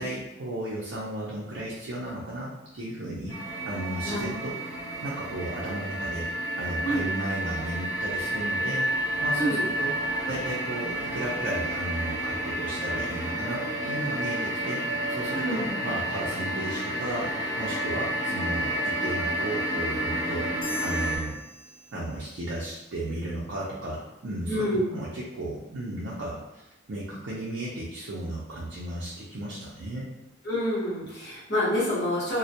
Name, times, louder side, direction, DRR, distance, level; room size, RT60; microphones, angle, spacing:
voice 1, 0.0-4.6 5.0-6.3 6.6-20.5 20.8-21.4 21.9-30.1, right 1 dB, 70° right, -6 dB, 0.5 m, -34 dB
sound 1, 3.3-21.2, right 1 dB, 20° left, 0.5 m, -30 dB
voice 2, 9.4-9.7 15.3-15.7 24.5-24.9 30.4-32.4, equal, 55° left, -8 dB, 0.9 m, -27 dB
sound 2, 20.6-22.5, left 1 dB, 90° left, 0.5 m, -42 dB
2.1 x 2.1 x 2.7 m, 0.92 s
head